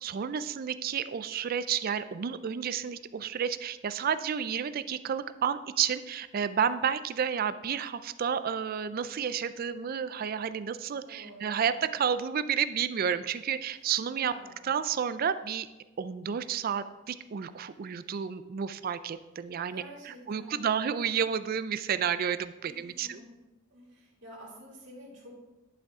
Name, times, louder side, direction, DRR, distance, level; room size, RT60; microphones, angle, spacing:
voice 1, 0.0-14.3 14.6-15.7 16.0-23.2, right 7 dB, 45° right, 13 dB, 0.4 m, -31 dB
voice 2, 11.0-11.8 13.7-14.8 19.7-21.0 22.6-23.3 23.7-25.3, equal, 60° right, -5 dB, 2.7 m, -50 dB
10.0 x 5.7 x 3.6 m, 1.1 s
head